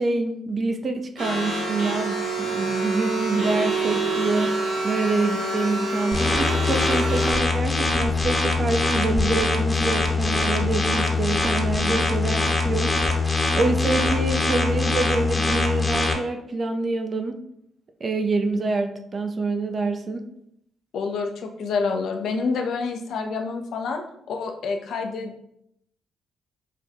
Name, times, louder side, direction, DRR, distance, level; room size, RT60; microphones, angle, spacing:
voice 1, 0.0-4.5 4.8-17.4 18.0-20.2, right 3 dB, 45° right, 6 dB, 0.5 m, -26 dB
sound 1, 1.2-7.3, right 2 dB, 85° right, 1.4 m, -26 dB
sound 2, 6.1-16.1, left 3 dB, 25° left, 0.8 m, -23 dB
voice 2, 20.9-24.0 24.3-25.4, left 4 dB, 65° left, 4 dB, 0.4 m, -27 dB
5.4 x 2.3 x 2.6 m, 0.75 s
hypercardioid pair, 45°, 0 cm